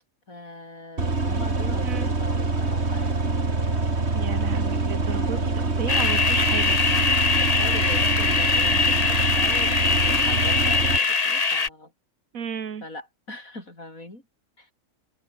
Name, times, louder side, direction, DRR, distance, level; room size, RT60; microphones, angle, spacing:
voice 1, 0.3-3.4 5.4-5.5 7.4-11.9 12.8-14.2 14.6-14.7, left 2 dB, 85° left, 7.3 m, -41 dB
sound 1, 1.0-11.0, right 3 dB, 50° right, 3.2 m, -25 dB
voice 2, 4.1-6.8 12.3-12.9, right 7 dB, 85° right, 1.8 m, -33 dB
sound 2, 5.9-11.7, left 4 dB, 30° left, 1.2 m, -22 dB
omnidirectional pair, 1.4 m